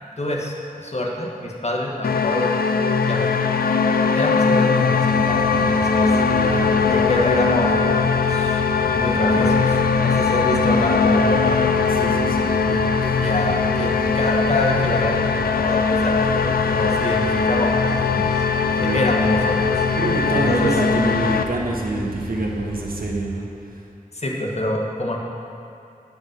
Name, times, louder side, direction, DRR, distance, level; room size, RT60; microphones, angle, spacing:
voice 1, 0.2-2.5 3.1-3.3 4.1-6.1 6.9-11.7 13.2-18.3 18.8-19.8 20.3-20.7 24.1-25.2, left 1 dB, 50° left, -1 dB, 1.2 m, -26 dB
sound 1, 2.0-21.4, left 5 dB, 85° left, 0.4 m, -20 dB
sound 2, 5.1-23.1, equal, 5° right, 1.2 m, -34 dB
voice 2, 6.3-6.7 11.9-13.3 18.7-19.1 19.9-23.8, right 2 dB, 80° right, -1 dB, 1.1 m, -27 dB
9.3 x 5.2 x 6.5 m, 2.6 s
wide cardioid pair, 55°, 15 cm